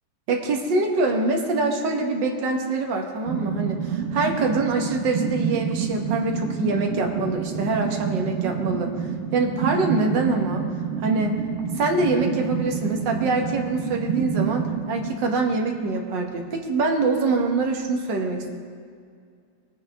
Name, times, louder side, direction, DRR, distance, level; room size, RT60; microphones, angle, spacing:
voice 1, 0.3-10.7 11.0-11.4 11.8-18.5, right 3 dB, 65° right, 2 dB, 1.8 m, -24 dB
sound 1, 3.3-15.9, right 7 dB, 45° right, 1.2 m, -28 dB
19.5 x 8.6 x 3.5 m, 2.2 s
omnidirectional pair, 2.2 m